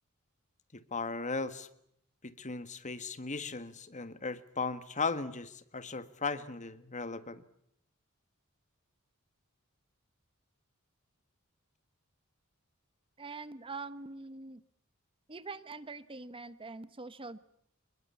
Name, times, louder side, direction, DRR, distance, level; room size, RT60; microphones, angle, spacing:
voice 1, 0.7-1.7 2.2-7.4, left 4 dB, 35° left, 12 dB, 1.6 m, -37 dB
voice 2, 13.2-14.6 15.3-17.4, right 3 dB, 25° right, 14 dB, 1.0 m, -44 dB
28.0 x 21.0 x 8.5 m, 0.73 s
head